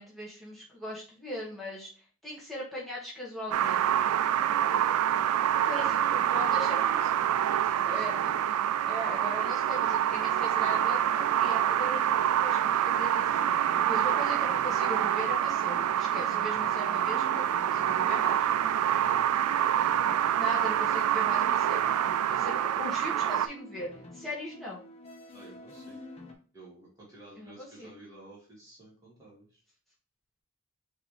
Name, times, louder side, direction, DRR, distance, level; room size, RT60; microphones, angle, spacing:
voice 1, 0.0-1.9 2.2-3.8 5.5-6.8 7.8-8.1 8.9-13.3 13.9-18.5 20.3-22.0 22.3-24.8 27.4-27.9, left 1 dB, ahead, -6 dB, 1.3 m, -39 dB
sound 1, 3.5-23.5, right 10 dB, 85° right, 0.3 m, -26 dB
voice 2, 5.7-8.6 14.1-14.2 18.9-19.9 25.3-26.0 26.5-29.6, right 2 dB, 15° right, -7 dB, 2.1 m, -51 dB
sound 2, 13.2-26.3, left 1 dB, 25° left, 0.7 m, -49 dB
5.1 x 2.8 x 3.1 m, 0.38 s
head